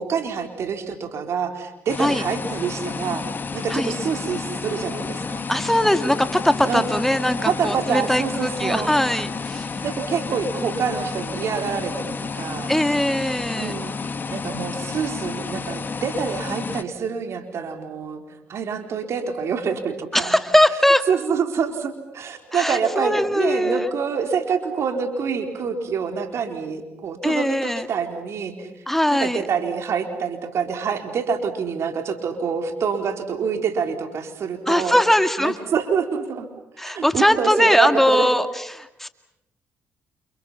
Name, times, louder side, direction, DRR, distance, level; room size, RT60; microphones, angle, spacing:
voice 1, 0.0-3.2 3.5-5.4 6.6-6.9 7.5-9.0 9.8-12.7 13.6-13.9 14.3-18.2 18.5-20.3 21.1-28.7 29.1-34.9 35.4-36.5 36.9-38.3, right 6 dB, 60° right, 5 dB, 4.3 m, -26 dB
sound 1, 1.9-16.8, left 4 dB, 40° left, 2.1 m, -31 dB
voice 2, 5.5-9.8 12.7-13.7 20.1-21.1 22.5-23.9 27.2-27.9 28.9-29.4 34.7-35.6 36.8-39.1, left 1 dB, 5° left, 9 dB, 2.1 m, -20 dB
29.5 x 28.5 x 5.8 m, 0.90 s
supercardioid pair, 55°, 5 cm